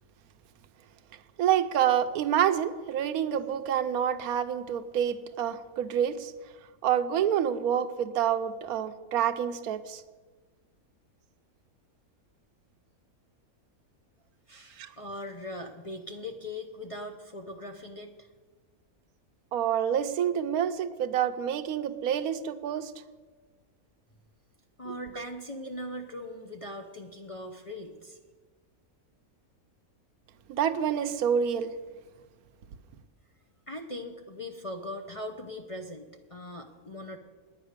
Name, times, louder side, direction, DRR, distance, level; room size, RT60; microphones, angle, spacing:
voice 1, 1.4-6.3 6.8-10.0 14.8-14.9 19.5-22.9 24.9-25.2 30.5-31.7, right 9 dB, 85° right, 11 dB, 1.1 m, -28 dB
voice 2, 14.5-18.3 24.8-28.2 33.7-37.2, left 1 dB, 35° left, 1 dB, 0.6 m, -40 dB
9.7 x 9.6 x 6.6 m, 1.4 s
omnidirectional pair, 1.5 m